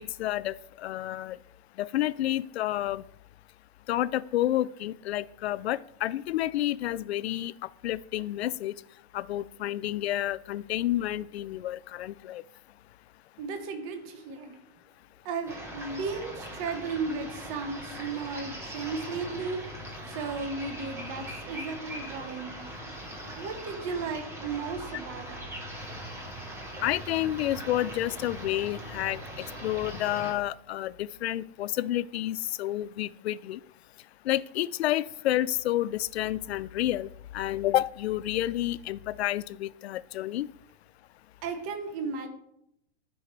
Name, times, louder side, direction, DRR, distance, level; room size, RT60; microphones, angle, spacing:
voice 1, 0.0-1.4 1.8-3.0 3.9-7.5 7.8-8.7 9.1-12.4 26.8-29.2 29.6-33.6 34.3-37.1 37.3-40.5, left 14 dB, 75° left, 18 dB, 0.5 m, -30 dB
voice 2, 13.4-14.5 15.2-19.6 20.1-22.7 23.3-25.4 41.4-42.3, right 4 dB, 35° right, 6 dB, 1.1 m, -35 dB
sound 1, 15.5-30.3, equal, 10° right, 1.2 m, -41 dB
12.5 x 5.5 x 3.3 m, 0.77 s
hypercardioid pair, 155°, 33 cm